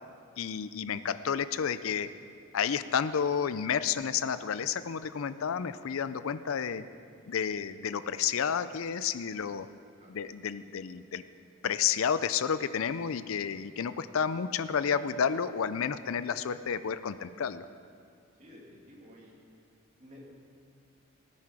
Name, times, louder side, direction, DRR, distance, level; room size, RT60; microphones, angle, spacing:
voice 1, 0.4-2.1 2.5-6.8 7.3-9.7 10.1-11.2 11.6-17.7, left 7 dB, 65° left, 14 dB, 0.4 m, -31 dB
voice 2, 18.4-19.4 20.0-20.3, left 1 dB, 30° right, -3 dB, 2.4 m, -52 dB
16.5 x 9.7 x 4.9 m, 2.3 s
head